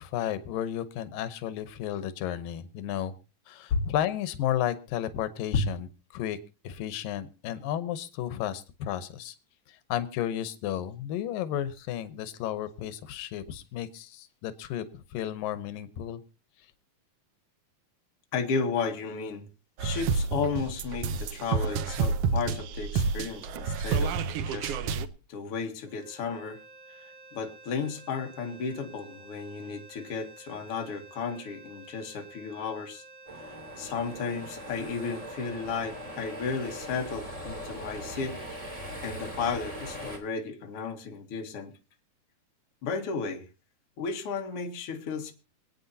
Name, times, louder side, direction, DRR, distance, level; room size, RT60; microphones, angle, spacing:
voice 1, 0.0-3.1 3.5-5.9 6.1-6.4 6.6-9.3 9.7-16.2, left 11 dB, 90° left, 13 dB, 2.6 m, -33 dB
voice 2, 18.3-19.5 19.8-24.1 24.5-24.8 25.3-26.6 26.9-33.0 33.5-38.4 39.0-41.7 42.8-43.5 44.0-45.3, left 5 dB, 50° left, 4 dB, 2.4 m, -33 dB
sound 1, 19.8-25.1, right 5 dB, 90° right, 1.3 m, -29 dB
sound 2, 25.8-38.1, right 3 dB, 60° right, 6.6 m, -51 dB
sound 3, 33.3-40.2, equal, 10° right, 2.4 m, -40 dB
26.5 x 8.9 x 2.7 m, 0.30 s
omnidirectional pair, 3.9 m